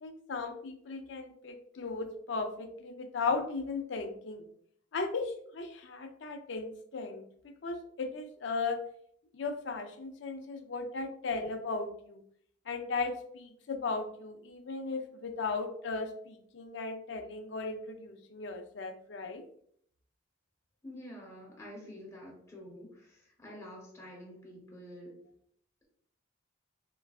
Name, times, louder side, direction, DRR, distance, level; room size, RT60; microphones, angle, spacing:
voice 1, 0.0-4.5 4.9-7.2 7.6-8.8 9.3-12.2 12.7-19.4, left 4 dB, 65° left, 5 dB, 0.5 m, -36 dB
voice 2, 20.8-25.2, equal, 15° left, -3 dB, 0.9 m, -48 dB
3.7 x 2.3 x 2.3 m, 0.64 s
head